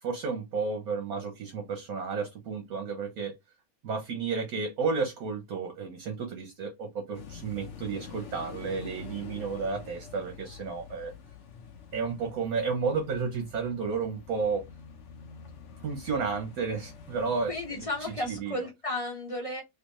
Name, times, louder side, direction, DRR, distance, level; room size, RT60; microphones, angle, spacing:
voice 1, 0.0-3.4 3.8-11.1 11.9-14.7 15.8-18.6, right 5 dB, 55° right, 1.2 m, -32 dB
sound 1, 7.1-18.4, left 6 dB, 60° left, 0.8 m, -47 dB
voice 2, 17.5-19.6, left 1 dB, 25° left, 0.8 m, -33 dB
3.4 x 3.2 x 2.9 m
omnidirectional pair, 2.2 m